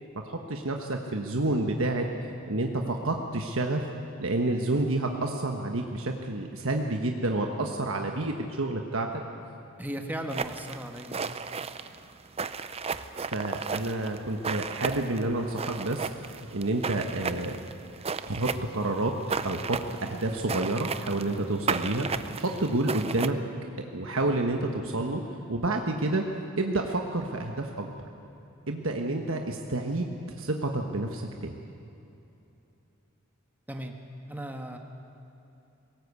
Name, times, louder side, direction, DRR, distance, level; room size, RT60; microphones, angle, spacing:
voice 1, 0.2-2.0 2.5-3.8 4.2-9.2 13.3-17.6 18.3-19.2 19.4-22.1 22.4-23.4 23.9-25.2 25.5-26.2 26.6-27.9 28.7-31.5, right 2 dB, 65° right, 3 dB, 1.3 m, -29 dB
voice 2, 9.8-11.3 11.6-11.7 33.7-34.0 34.3-34.8, right 1 dB, 10° right, 3 dB, 1.4 m, -36 dB
sound 1, 10.3-23.3, right 5 dB, 30° right, 0.6 m, -34 dB
22.0 x 18.5 x 8.3 m, 2.9 s
head